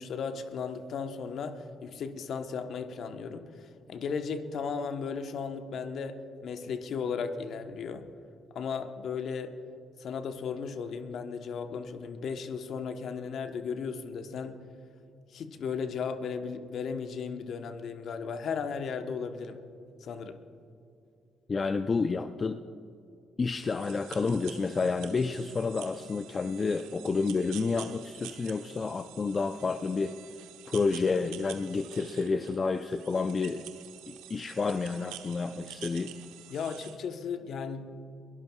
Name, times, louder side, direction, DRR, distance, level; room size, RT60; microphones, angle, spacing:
voice 1, 0.0-3.5 3.9-8.1 8.5-9.5 10.0-14.6 15.3-19.6 20.0-20.4 36.5-38.0, left 6 dB, 60° left, 8 dB, 1.1 m, -35 dB
voice 2, 21.5-22.6 23.4-30.1 30.7-33.7 34.1-36.2, left 4 dB, 40° left, 10 dB, 0.5 m, -30 dB
sound 1, 23.5-37.0, right 12 dB, 80° right, 1.0 m, -48 dB
22.5 x 18.5 x 2.4 m, 2.6 s
hypercardioid pair, 50°, 0 cm